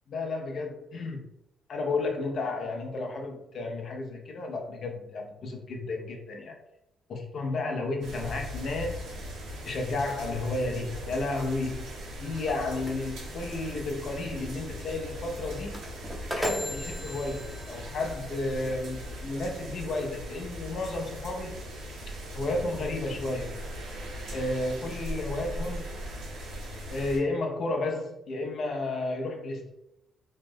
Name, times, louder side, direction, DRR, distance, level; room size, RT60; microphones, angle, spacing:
voice 1, 0.1-1.3 1.7-6.6 7.1-9.0 9.7-11.9 12.2-15.8 16.3-21.6 22.3-23.6 24.3-25.9 26.9-29.7, left 2 dB, 55° left, 2 dB, 0.6 m, -32 dB
sound 1, 8.0-27.2, equal, 90° right, 1.1 m, -39 dB
sound 2, 12.2-19.3, equal, 5° right, 0.6 m, -39 dB
3.0 x 2.0 x 3.5 m, 0.82 s
cardioid pair, 90°, 0 cm